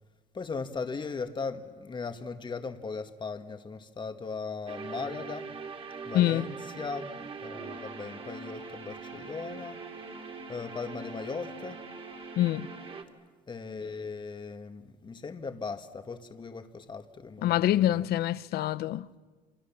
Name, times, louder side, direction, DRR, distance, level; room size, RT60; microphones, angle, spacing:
voice 1, 0.3-5.5 6.0-9.8 10.5-11.8 13.5-18.1, left 4 dB, 25° left, 1.7 m, -38 dB
sound 1, 4.7-13.0, right 4 dB, 35° right, 2.8 m, -42 dB
voice 2, 6.1-6.5 12.4-12.7 17.4-19.1, left 13 dB, 70° left, 0.8 m, -25 dB
28.5 x 26.0 x 7.4 m
cardioid pair, 110°, 17 cm